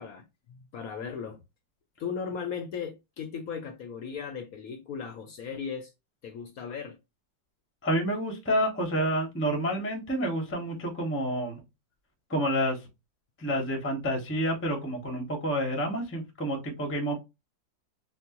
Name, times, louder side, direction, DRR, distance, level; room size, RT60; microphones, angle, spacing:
voice 1, 0.0-1.4 2.0-5.9 6.2-7.0, left 6 dB, 70° left, 0.8 m, -37 dB
voice 2, 7.8-11.6 12.3-12.8 13.4-17.2, equal, 15° left, 0.4 m, -29 dB
4.3 x 2.1 x 2.8 m
omnidirectional pair, 2.1 m